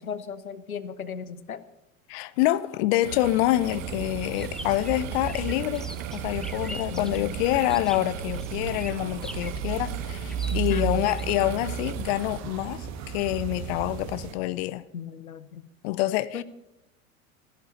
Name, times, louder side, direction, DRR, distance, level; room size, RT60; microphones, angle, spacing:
voice 1, 0.0-1.6 6.7-7.3 10.5-11.0 14.9-15.7 16.3-16.4, left 6 dB, 85° left, 0.9 m, -36 dB
voice 2, 2.1-5.9 6.1-14.8 15.8-16.4, left 16 dB, 50° left, 0.7 m, -26 dB
sound 1, 3.0-12.4, right 13 dB, 65° right, 0.7 m, -39 dB
sound 2, 3.6-14.3, right 7 dB, 40° right, 1.6 m, -35 dB
sound 3, 4.3-11.3, left 1 dB, ahead, 0.8 m, -44 dB
14.0 x 11.0 x 6.7 m
figure-of-eight pair, 80°, 42 cm